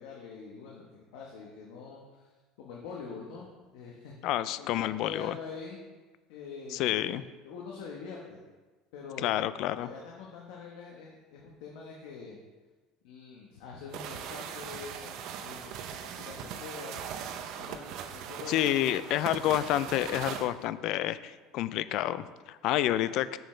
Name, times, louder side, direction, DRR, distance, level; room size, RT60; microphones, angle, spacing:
voice 1, 0.0-2.3 2.6-3.5 3.7-4.1 4.6-5.8 6.3-7.2 7.4-8.4 8.9-9.3 9.7-12.4 13.0-17.3 17.6-17.8 18.1-19.5, left 5 dB, 75° left, -2 dB, 1.1 m, -45 dB
voice 2, 4.2-5.4 6.7-7.2 9.2-9.9 18.5-23.4, left 13 dB, 50° left, 14 dB, 0.3 m, -29 dB
sound 1, 13.9-20.5, right 8 dB, 55° right, 0.6 m, -40 dB
7.4 x 7.0 x 3.3 m, 1.3 s
cardioid pair, 155°, 0 cm